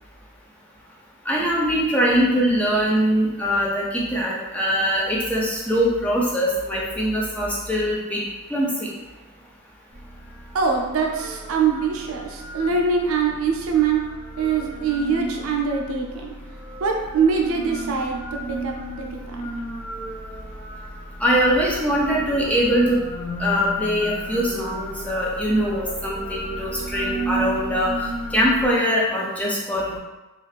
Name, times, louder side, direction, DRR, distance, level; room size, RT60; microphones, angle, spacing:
voice 1, 1.3-8.2 8.5-8.9 21.2-23.0 23.4-30.0, equal, 5° left, -5 dB, 0.4 m, -22 dB
sound 1, 9.9-28.7, right 1 dB, 60° left, 1.1 m, -34 dB
voice 2, 10.5-16.3 16.8-19.4, right 5 dB, 75° right, 1 dB, 0.4 m, -23 dB
2.4 x 2.4 x 3.2 m, 1.1 s
head